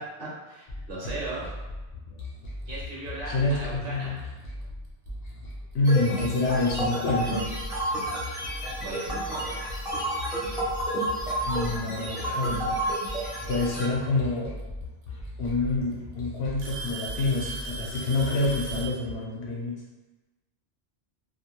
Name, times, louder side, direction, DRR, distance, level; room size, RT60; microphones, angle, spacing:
voice 1, 0.0-1.5 2.7-4.3 8.3-9.6, right 2 dB, 55° right, -6 dB, 0.8 m, -38 dB
sound 1, 0.7-19.1, left 1 dB, 50° left, 0.5 m, -39 dB
voice 2, 3.3-4.2 5.7-7.5 11.4-12.8 13.5-14.5 15.4-19.8, left 2 dB, 70° left, -3 dB, 0.8 m, -27 dB
Alarm / Tick-tock, 5.1-5.3 6.2-6.3 7.1-7.2 8.8-8.9 10.2-10.3 11.5-11.9 13.7-13.8 15.0-15.1 15.5-15.9 16.6-19.0, right 3 dB, 85° right, 0.9 m, -38 dB
sound 2, 5.8-13.8, right 1 dB, 5° right, 0.4 m, -31 dB
2.3 x 2.1 x 3.0 m, 1.1 s
omnidirectional pair, 1.2 m